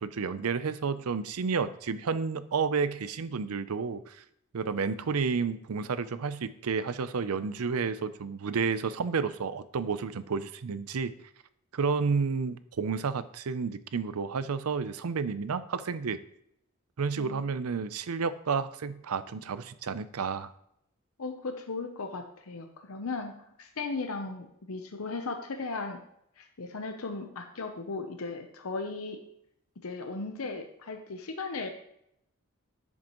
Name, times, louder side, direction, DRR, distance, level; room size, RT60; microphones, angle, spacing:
voice 1, 0.0-4.2 4.5-11.1 11.7-16.2 17.0-20.5, right 5 dB, 90° right, 14 dB, 0.5 m, -31 dB
voice 2, 21.2-23.3 23.6-26.0 26.4-29.2 29.8-31.7, left 3 dB, 75° left, 5 dB, 0.8 m, -36 dB
10.5 x 7.5 x 3.0 m, 0.75 s
head